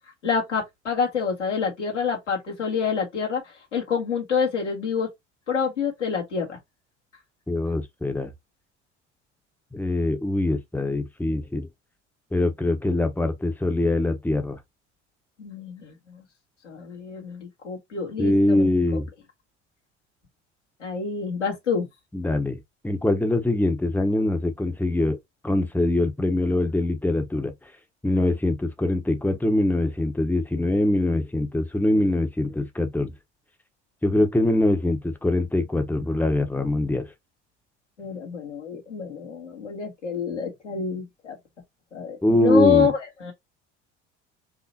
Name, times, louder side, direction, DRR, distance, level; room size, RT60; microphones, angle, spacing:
voice 1, 0.2-3.4 3.7-5.1 5.5-6.6 15.4-16.2 16.6-18.7 20.8-21.9 38.0-41.3 41.9-43.3, left 6 dB, 90° left, 1.9 m, -27 dB
voice 2, 7.5-8.3 9.7-11.7 12.3-14.6 18.2-19.0 22.1-25.2 25.4-27.5 28.0-33.1 34.0-37.1 42.2-42.9, left 1 dB, 5° left, 1.1 m, -23 dB
4.8 x 3.0 x 2.9 m
figure-of-eight pair, 60°, 35 cm